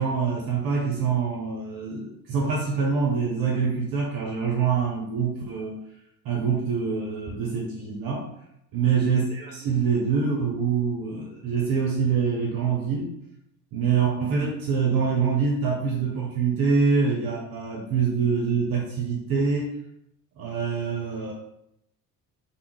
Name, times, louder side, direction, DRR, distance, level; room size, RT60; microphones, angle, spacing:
voice 1, 0.0-5.8 6.2-8.3 8.7-13.1 13.7-19.7 20.4-21.3, right 5 dB, 45° right, -1 dB, 0.7 m, -25 dB
3.5 x 2.2 x 3.1 m, 0.79 s
figure-of-eight pair, 55°, 49 cm